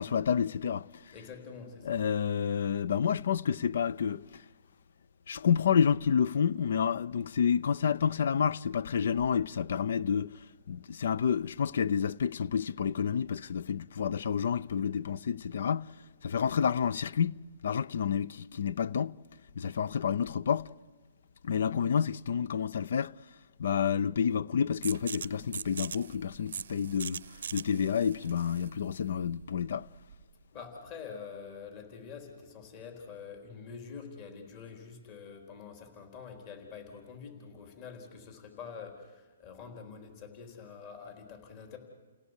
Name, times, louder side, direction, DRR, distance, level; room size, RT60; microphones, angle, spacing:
voice 1, 0.0-1.1 1.8-4.5 5.3-19.1 19.6-20.7 21.4-23.1 23.6-29.9, left 7 dB, 65° left, 0.7 m, -29 dB
voice 2, 1.1-2.0 30.5-41.8, left 6 dB, 35° left, 4.1 m, -46 dB
sound 1, 24.8-30.3, right 7 dB, 70° right, 0.7 m, -42 dB
30.0 x 17.0 x 8.3 m
hypercardioid pair, 150°, 0 cm